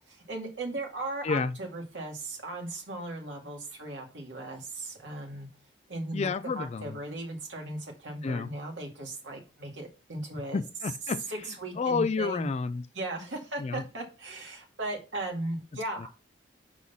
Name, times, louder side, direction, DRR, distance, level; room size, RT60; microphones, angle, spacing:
voice 1, 0.1-5.5 5.9-10.6 11.3-12.5 12.9-16.1, right 2 dB, 80° right, 2.3 m, -37 dB
voice 2, 1.2-1.5 6.1-7.0 8.2-8.5 10.5-11.5 11.8-12.9 13.6-13.8 16.0-16.1, left 4 dB, 35° left, 0.3 m, -30 dB
5.6 x 4.8 x 5.6 m
head